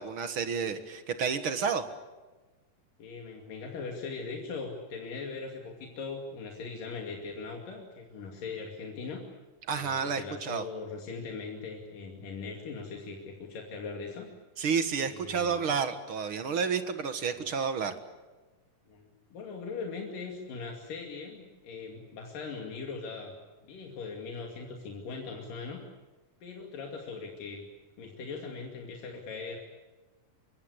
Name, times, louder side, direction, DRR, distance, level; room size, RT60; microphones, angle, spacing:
voice 1, 0.0-1.8 9.7-10.6 14.6-17.9, right 6 dB, 50° right, 9 dB, 2.0 m, -30 dB
voice 2, 3.0-9.2 9.8-14.3 15.0-15.6 17.3-17.5 18.9-23.4 23.6-25.8 26.4-27.6 28.0-29.6, left 4 dB, 90° left, 1 dB, 4.2 m, -40 dB
25.0 x 24.0 x 8.3 m, 1.2 s
omnidirectional pair, 3.7 m